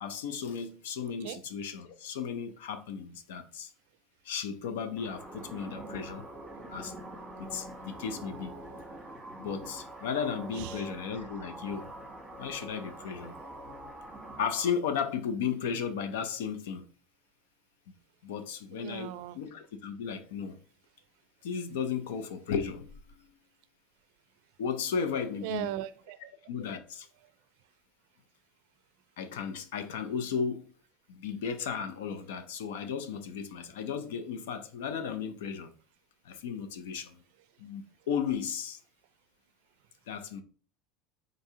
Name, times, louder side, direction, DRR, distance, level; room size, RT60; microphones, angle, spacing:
voice 1, 0.0-3.7 4.2-6.3 6.7-6.9 7.4-8.6 9.4-11.9 12.4-13.3 14.4-16.9 18.2-20.6 21.4-23.3 24.6-25.7 26.5-27.1 29.2-30.7 31.1-35.7 36.2-37.2 37.6-38.8 40.1-40.4, left 7 dB, 90° left, 0.6 m, -35 dB
sound 1, 5.0-14.7, right 1 dB, 10° right, 1.2 m, -44 dB
voice 2, 18.7-19.4 25.4-26.3, right 13 dB, 70° right, 0.4 m, -38 dB
3.9 x 2.7 x 4.8 m
supercardioid pair, 120°, 0 cm